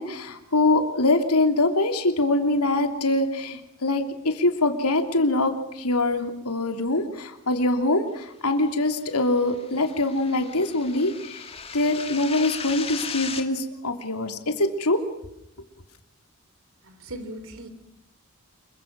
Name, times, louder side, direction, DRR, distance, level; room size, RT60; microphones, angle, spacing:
voice 1, 0.0-15.0, left 2 dB, 80° left, 6 dB, 3.1 m, -24 dB
sound 1, 9.0-13.4, left 6 dB, 25° left, 2.3 m, -37 dB
voice 2, 16.8-17.7, right 1 dB, 60° right, 11 dB, 3.7 m, -38 dB
28.0 x 23.5 x 6.2 m, 0.85 s
head